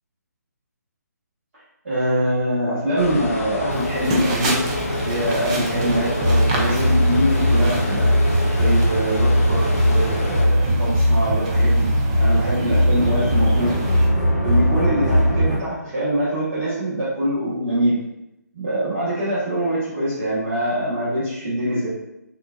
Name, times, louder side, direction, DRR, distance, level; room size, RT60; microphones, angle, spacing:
voice 1, 1.8-4.6 5.0-8.1 8.5-11.9 12.2-13.7 14.4-18.0 18.5-21.9, equal, 45° right, -11 dB, 1.3 m, -23 dB
sound 1, 3.0-10.4, left 2 dB, 45° left, 0.7 m, -28 dB
sound 2, 3.7-14.1, right 2 dB, 20° right, 0.4 m, -29 dB
sound 3, 6.2-15.6, equal, ahead, 0.9 m, -19 dB
3.6 x 2.5 x 2.4 m, 0.85 s
figure-of-eight pair, 150°, 9 cm